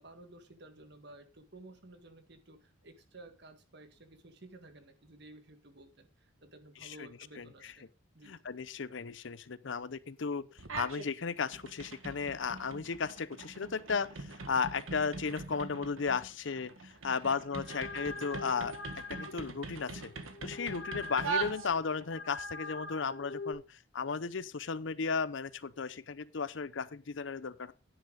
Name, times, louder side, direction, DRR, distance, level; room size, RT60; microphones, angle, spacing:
voice 1, 0.0-7.8 8.1-8.5 17.0-18.0, right 2 dB, 55° right, 1.7 m, -54 dB
voice 2, 7.4-7.7 8.3-10.5 10.7-20.1 20.4-27.7, left 5 dB, 65° left, 0.6 m, -35 dB
sound 1, 10.6-11.1 11.4-22.1, right 4 dB, 85° right, 1.6 m, -42 dB
sound 2, 17.4-23.5, left 3 dB, 85° left, 3.7 m, -44 dB
10.0 x 9.6 x 3.9 m
head